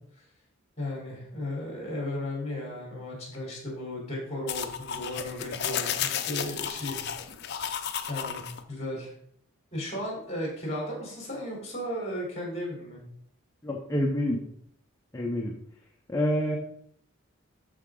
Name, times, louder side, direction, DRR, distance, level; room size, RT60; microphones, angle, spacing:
voice 1, 0.8-7.0 8.1-9.1 9.7-13.0, left 1 dB, 30° left, -2 dB, 3.6 m, -35 dB
sound 1, 4.5-8.6, left 8 dB, 50° left, 0.6 m, -33 dB
voice 2, 13.6-14.4 15.1-15.5 16.1-16.6, equal, 15° left, -1 dB, 0.8 m, -27 dB
13.0 x 4.7 x 3.8 m, 0.68 s
head